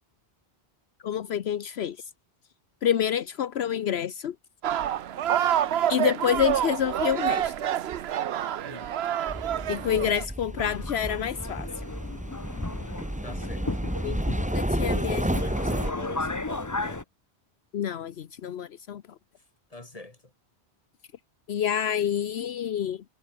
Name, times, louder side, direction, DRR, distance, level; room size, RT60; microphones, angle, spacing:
voice 1, 1.0-2.1 2.8-4.3 5.9-7.5 9.7-11.8 14.0-15.2 17.7-19.0 21.5-23.0, left 9 dB, 75° left, 1.0 m, -28 dB
sound 1, 4.6-10.3, right 10 dB, 75° right, 0.9 m, -27 dB
voice 2, 8.6-8.9 13.2-13.9 14.7-17.1 19.7-20.3, left 2 dB, 35° left, 2.7 m, -42 dB
sound 2, 9.3-15.9, right 1 dB, 5° right, 1.5 m, -31 dB
Subway metro underground, 10.6-17.0, left 2 dB, 20° left, 0.9 m, -35 dB
omnidirectional pair, 1.1 m